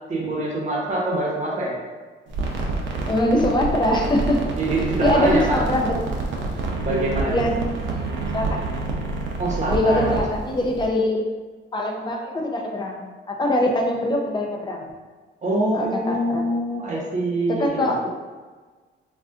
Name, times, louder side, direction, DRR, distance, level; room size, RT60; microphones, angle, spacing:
voice 1, 0.1-1.7 4.6-5.5 6.8-7.4 9.4-10.2 15.4-17.9, right 1 dB, 35° right, -3 dB, 0.9 m, -24 dB
sound 1, 2.3-10.9, right 3 dB, 70° right, 0.6 m, -27 dB
voice 2, 3.1-4.4 5.0-6.0 7.3-8.6 9.7-11.2 11.7-14.9 15.7-16.5 17.5-18.0, left 1 dB, 25° left, 1 dB, 0.5 m, -23 dB
2.4 x 2.4 x 3.4 m, 1.4 s
cardioid pair, 90°, 20 cm